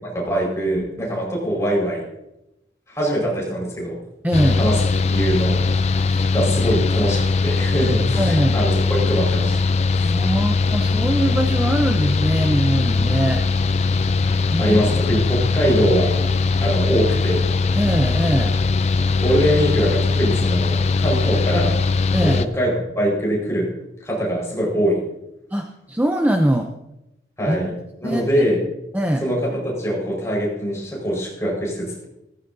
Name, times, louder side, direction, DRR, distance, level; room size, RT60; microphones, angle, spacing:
voice 1, 0.0-2.1 2.9-3.9 4.6-4.8 5.1-5.6 6.3-8.7 9.1-9.5 9.9-10.1 14.6-16.3 16.6-17.5 19.2-21.8 22.2-23.7 24.0-25.0 27.4-27.7 28.0-28.6 29.2-32.1, equal, 15° left, -3 dB, 4.8 m, -22 dB
voice 2, 4.2-4.6 6.1-6.3 8.2-8.6 10.0-13.4 14.5-14.8 17.7-18.6 22.1-22.4 25.5-26.7 27.5-27.6 28.0-28.4 28.9-29.2, right 1 dB, 10° right, 3 dB, 0.6 m, -22 dB
Mechanical fan, 4.3-22.5, left 4 dB, 35° left, 0.4 m, -20 dB
16.0 x 14.0 x 2.7 m, 0.89 s
head